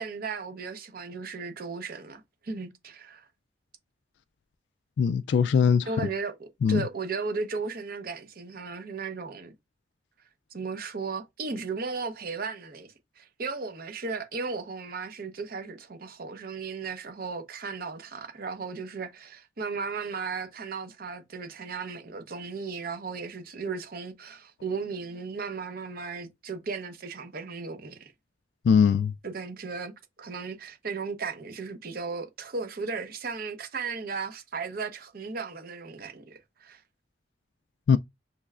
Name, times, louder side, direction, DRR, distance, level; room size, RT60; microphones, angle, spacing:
voice 1, 0.0-3.3 5.9-9.5 10.5-28.1 29.2-29.9 30.2-36.8, right 4 dB, 55° right, 0.8 m, -35 dB
voice 2, 5.0-5.9 6.6-6.8 28.6-29.1 37.9-38.0, left 6 dB, 70° left, 0.3 m, -21 dB
6.0 x 3.2 x 2.4 m
head